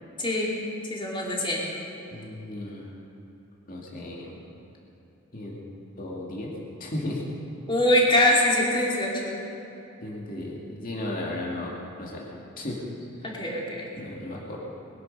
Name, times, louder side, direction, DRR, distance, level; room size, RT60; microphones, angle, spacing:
voice 1, 0.2-0.5 0.9-1.6 7.7-9.4 13.2-13.9, left 1 dB, 25° left, -4 dB, 3.0 m, -23 dB
voice 2, 2.1-2.9 3.7-4.4 5.3-5.6 6.0-6.5 6.8-7.2 10.0-12.8 14.0-14.6, left 1 dB, 40° left, -3 dB, 2.3 m, -35 dB
21.5 x 11.0 x 5.5 m, 3.0 s
head